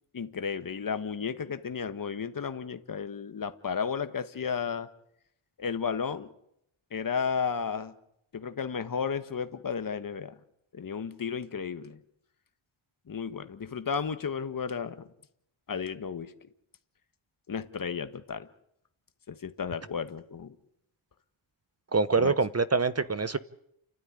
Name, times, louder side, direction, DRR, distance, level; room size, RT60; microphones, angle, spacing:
voice 1, 0.1-4.9 5.6-6.3 6.9-7.9 8.3-10.3 10.7-12.0 13.1-15.1 15.7-16.3 17.5-18.5 19.3-20.5 22.2-22.3, left 6 dB, 40° left, 10 dB, 1.4 m, -33 dB
voice 2, 21.9-23.4, right 4 dB, 30° right, 15 dB, 0.8 m, -25 dB
29.0 x 12.5 x 9.9 m, 0.77 s
wide cardioid pair, 125°, 49 cm